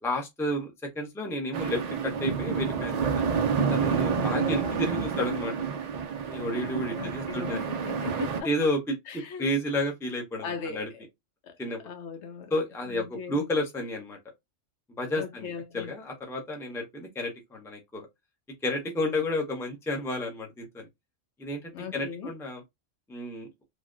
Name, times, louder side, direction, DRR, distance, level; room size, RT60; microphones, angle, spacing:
voice 1, 0.0-3.1 3.7-5.5 6.3-7.7 8.4-8.8 9.1-10.9 11.6-11.8 12.5-14.2 15.0-18.1 18.6-20.9 21.4-22.6 23.1-23.5, left 1 dB, 5° left, 0.5 m, -31 dB
sound 1, 1.5-8.4, right 6 dB, 70° right, 0.3 m, -29 dB
voice 2, 4.1-5.1 6.5-8.5 9.1-9.5 10.4-11.0 11.4-11.6 11.8-12.5 12.9-13.5 15.1-15.9 21.7-22.3, left 6 dB, 70° left, 0.9 m, -38 dB
3.4 x 2.2 x 2.4 m
omnidirectional pair, 1.3 m